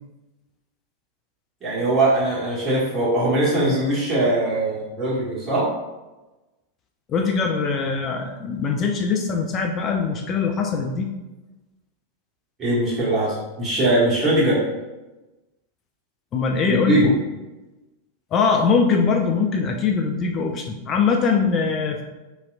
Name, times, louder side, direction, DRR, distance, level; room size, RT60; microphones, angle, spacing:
voice 1, 1.6-5.7 12.6-14.6 16.7-17.1, right 1 dB, 20° right, -7 dB, 1.3 m, -21 dB
voice 2, 7.1-11.1 16.3-17.1 18.3-22.0, left 5 dB, 30° left, 3 dB, 0.3 m, -22 dB
3.1 x 2.7 x 2.5 m, 1.1 s
figure-of-eight pair, 90°, 0 cm